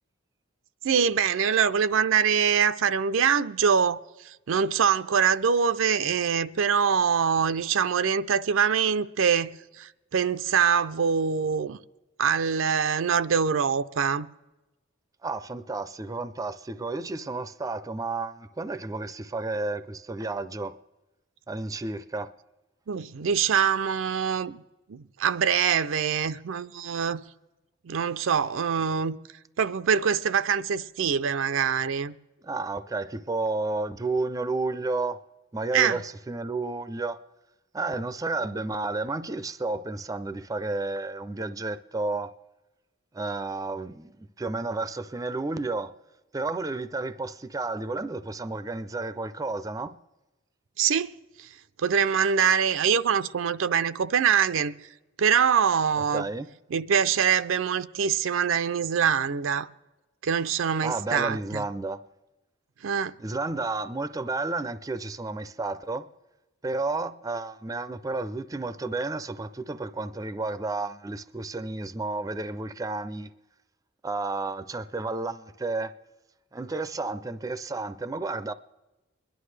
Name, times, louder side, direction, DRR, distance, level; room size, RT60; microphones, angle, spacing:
voice 1, 0.8-11.8 12.2-14.3 22.9-24.6 24.9-27.2 27.8-29.2 29.6-32.1 35.7-36.0 50.8-51.5 51.8-54.9 55.2-56.3 56.7-59.7 60.2-61.6 62.8-63.2, right 7 dB, 80° right, 0.5 m, -24 dB
voice 2, 15.2-20.8 21.5-22.3 32.4-35.2 35.5-37.2 37.7-42.3 43.1-45.9 46.3-50.0 56.1-56.5 60.8-62.0 63.2-66.1 66.6-73.3 74.0-75.9 76.5-78.5, right 3 dB, 20° right, 0.4 m, -31 dB
22.5 x 11.5 x 3.3 m
head